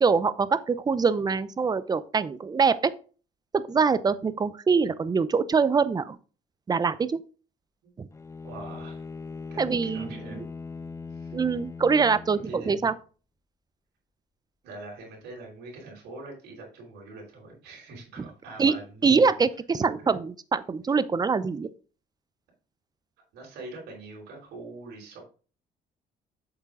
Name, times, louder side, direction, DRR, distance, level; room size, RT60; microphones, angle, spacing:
voice 1, 0.0-2.9 3.5-6.2 6.7-7.2 8.0-8.1 9.6-10.4 11.3-12.9 18.6-18.7 19.0-21.7, right 5 dB, 25° right, 0.7 m, -24 dB
Bowed string instrument, 8.1-13.0, left 4 dB, 15° left, 0.7 m, -40 dB
voice 2, 8.4-9.0 9.5-10.5 11.1-11.4 12.3-12.9 14.6-19.3 19.8-20.1 23.3-25.2, right 3 dB, 85° right, 5.1 m, -43 dB
8.1 x 7.0 x 3.8 m
cardioid pair, 110°, 17 cm